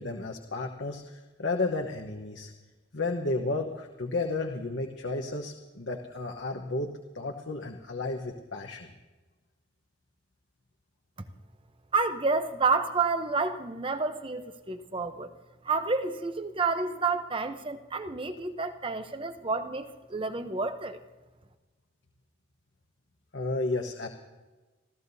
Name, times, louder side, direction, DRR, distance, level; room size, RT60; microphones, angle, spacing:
voice 1, 0.0-2.5 2.9-8.9 23.3-24.1, left 2 dB, 70° left, 2 dB, 1.1 m, -32 dB
voice 2, 11.9-15.3 15.6-21.0, right 4 dB, 25° right, 9 dB, 0.8 m, -29 dB
30.0 x 14.0 x 2.7 m, 1.2 s
head